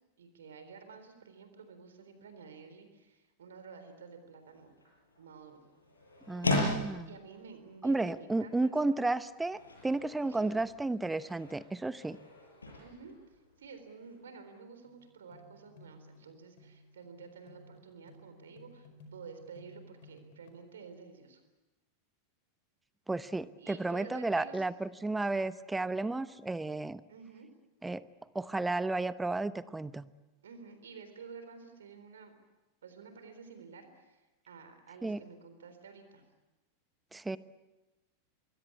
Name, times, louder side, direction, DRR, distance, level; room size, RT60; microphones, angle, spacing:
voice 1, 0.2-4.7 5.2-5.6 7.1-9.0 10.2-10.5 12.8-21.4 23.6-24.6 27.1-27.5 30.4-32.3 32.8-36.2, right 5 dB, 65° right, 8 dB, 3.8 m, -51 dB
sound 1, 4.4-14.2, left 2 dB, 75° left, 7.7 m, -39 dB
voice 2, 6.3-7.1 7.8-12.2 23.1-27.0 27.8-28.0 28.3-30.1 35.0-35.2 37.1-37.4, right 2 dB, 10° right, 17 dB, 0.8 m, -33 dB
sound 2, 14.8-20.5, left 1 dB, 55° left, 5.0 m, -57 dB
25.0 x 22.0 x 8.4 m, 1.1 s
figure-of-eight pair, 90°, 0 cm